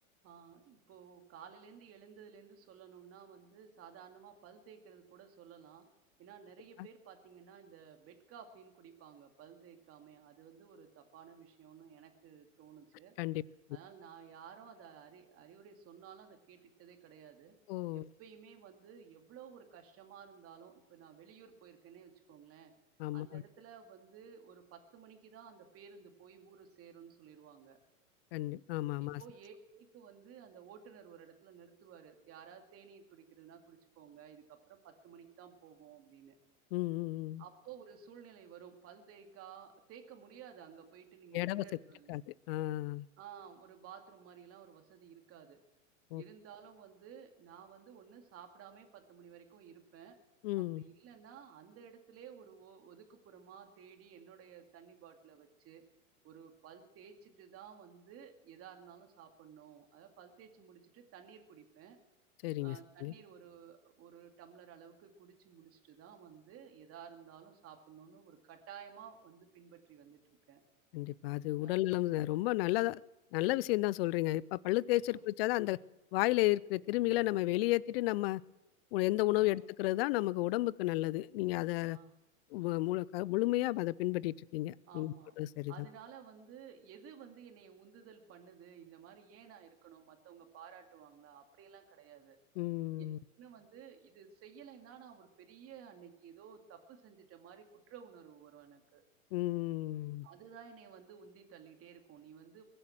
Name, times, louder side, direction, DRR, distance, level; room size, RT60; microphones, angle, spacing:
voice 1, 0.2-5.9 6.2-13.1 13.7-17.6 17.9-22.7 23.1-27.8 29.0-36.3 37.4-42.1 43.2-45.6 46.1-50.2 50.6-55.8 56.2-62.0 62.6-70.2 70.5-70.6 71.6-71.8 75.1-75.2 79.3-79.6 81.9-82.1 84.9-85.3 85.7-92.4 93.4-99.0 100.2-102.6, right 7 dB, 30° right, 5 dB, 2.2 m, -54 dB
voice 2, 17.7-18.0 23.0-23.4 28.3-29.2 36.7-37.4 41.3-41.6 42.1-43.1 46.1-46.2 50.4-50.8 62.4-63.1 70.9-73.0 73.3-75.8 76.1-78.4 78.9-82.0 82.5-85.9 92.6-93.2 99.3-100.3, left 18 dB, 45° left, 23 dB, 0.4 m, -33 dB
21.5 x 7.8 x 7.6 m, 0.96 s
hypercardioid pair, 120°, 43 cm